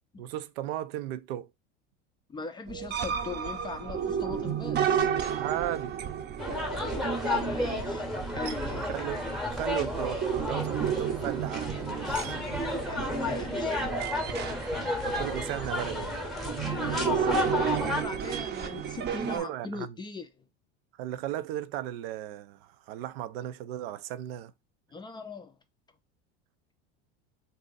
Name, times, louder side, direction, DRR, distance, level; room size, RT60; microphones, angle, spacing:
voice 1, 0.2-1.5 5.3-6.0 8.7-12.4 14.9-16.2 19.2-19.9 21.0-24.5, right 12 dB, 75° right, 0.5 m, -36 dB
voice 2, 2.3-5.1 7.3-8.1 8.3-8.9 12.8-13.8 16.5-20.4 24.9-25.6, left 3 dB, 15° left, 0.4 m, -39 dB
sound 1, 2.7-19.4, right 8 dB, 35° right, 0.6 m, -32 dB
sound 2, 6.4-18.0, left 2 dB, ahead, 0.8 m, -32 dB
2.7 x 2.4 x 3.8 m
supercardioid pair, 110°, 31 cm